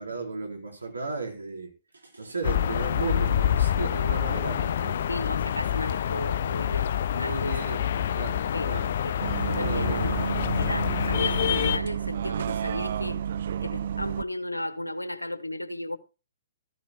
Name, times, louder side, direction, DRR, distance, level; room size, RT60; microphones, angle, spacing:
voice 1, 0.0-1.7 2.0-5.0 7.1-7.9 8.1-8.9 9.6-10.5, right 3 dB, 80° right, 4.3 m, -35 dB
sound 1, 2.4-11.8, left 10 dB, 55° left, 0.7 m, -27 dB
voice 2, 5.1-7.6 8.0-8.1 8.5-8.7 9.0-10.1 10.4-13.2 13.6-16.0, left 1 dB, 90° left, 1.3 m, -35 dB
Bus, 9.2-14.2, right 9 dB, 55° right, 0.6 m, -31 dB
15.0 x 14.5 x 2.3 m
figure-of-eight pair, 120°, 0 cm